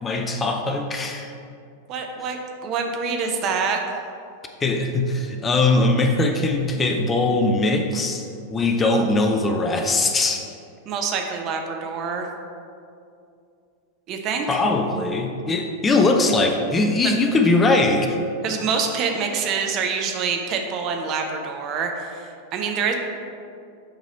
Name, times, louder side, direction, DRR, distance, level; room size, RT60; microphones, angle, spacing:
voice 1, 0.0-1.3 4.6-10.4 14.5-18.2, left 2 dB, 20° left, 4 dB, 0.5 m, -21 dB
voice 2, 1.9-3.8 10.9-12.3 14.1-14.6 17.0-17.1 18.4-22.9, right 5 dB, 35° right, 3 dB, 0.6 m, -26 dB
6.6 x 3.0 x 5.0 m, 2.5 s
figure-of-eight pair, 90°, 0 cm